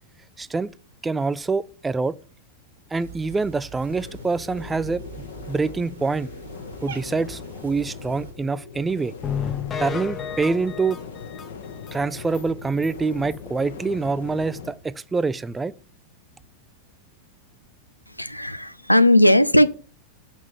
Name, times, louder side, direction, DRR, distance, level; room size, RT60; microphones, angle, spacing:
voice 1, 0.4-0.7 1.0-2.2 2.9-5.0 5.5-6.3 6.8-9.1 9.8-11.0 11.9-15.7, right 4 dB, 10° right, 0.4 m, -25 dB
Cat, 2.9-8.3, right 6 dB, 60° right, 1.6 m, -43 dB
sound 1, 3.9-14.7, left 6 dB, 60° left, 1.4 m, -40 dB
sound 2, 9.2-11.9 12.3-12.4 12.8-12.9 13.3-13.4, left 8 dB, 25° left, 0.7 m, -31 dB
voice 2, 18.2-19.7, left 1 dB, 90° left, 0.5 m, -17 dB
6.0 x 5.9 x 7.2 m
figure-of-eight pair, 90°, 0 cm